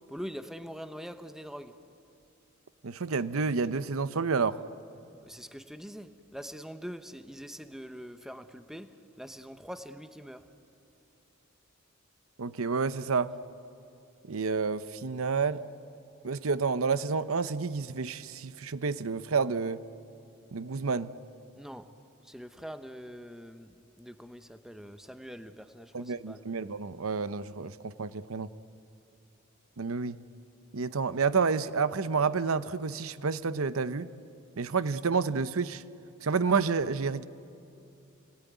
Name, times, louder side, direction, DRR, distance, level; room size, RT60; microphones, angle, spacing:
voice 1, 0.1-1.8 5.2-10.5 21.6-22.0 22.2-26.4, equal, ahead, 9 dB, 1.0 m, -44 dB
voice 2, 2.8-4.6 12.4-13.3 14.2-15.6 16.2-19.8 20.5-21.1 25.9-28.5 29.8-30.2 30.7-34.1 34.6-35.8 36.2-37.3, right 5 dB, 75° right, 14 dB, 0.8 m, -29 dB
29.0 x 20.0 x 9.5 m, 2.7 s
head